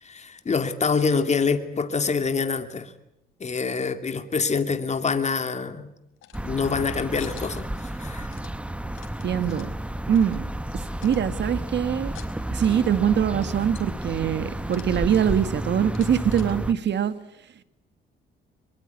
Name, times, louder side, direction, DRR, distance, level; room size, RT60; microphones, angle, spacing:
voice 1, 0.0-2.9 3.4-5.9 6.4-8.3, left 5 dB, 35° left, 2.7 m, -26 dB
sound 1, 6.2-6.5 7.2-7.7 8.0-8.6 8.9-9.7 10.1-10.7 10.9-11.3 12.1-12.4 12.6-12.7 13.4-13.9 14.7-15.3 15.8-16.5, left 11 dB, 85° left, 3.9 m, -48 dB
sound 2, 6.3-16.7, right 1 dB, 5° right, 1.2 m, -32 dB
voice 2, 9.2-9.7 10.1-10.4 10.7-12.1 12.5-17.2, right 9 dB, 60° right, 2.0 m, -23 dB
23.5 x 23.0 x 8.3 m
cardioid pair, 90°, 20 cm